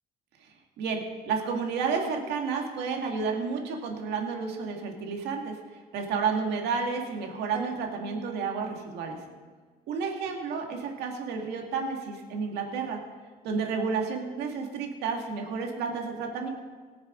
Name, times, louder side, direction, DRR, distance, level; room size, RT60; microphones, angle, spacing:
voice 1, 0.4-5.6 5.9-9.2 9.9-13.0 13.4-16.5, right 5 dB, 85° right, 2 dB, 2.1 m, -31 dB
sound 1, 7.5-9.5, equal, 10° left, 2.6 m, -44 dB
18.5 x 7.1 x 5.2 m, 1.4 s
cardioid pair, 110°, 17 cm